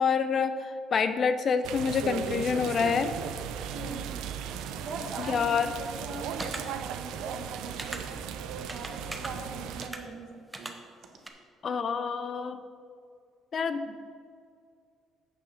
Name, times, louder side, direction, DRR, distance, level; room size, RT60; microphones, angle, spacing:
voice 1, 0.0-3.1 5.2-5.7 11.6-12.6 13.5-14.0, left 6 dB, 35° left, 10 dB, 0.4 m, -27 dB
sound 1, 1.6-9.9, right 8 dB, 90° right, 0.5 m, -37 dB
voice 2, 3.7-4.2 4.6-10.7 11.0-11.2, right 3 dB, 50° right, 3 dB, 1.3 m, -41 dB
sound 2, 6.4-6.6 7.8-8.0 8.7-9.3 9.8-10.0 10.5-10.7 11.3-11.4, right 2 dB, 10° right, 0.7 m, -37 dB
8.2 x 6.6 x 5.7 m, 2.2 s
cardioid pair, 155°, 0 cm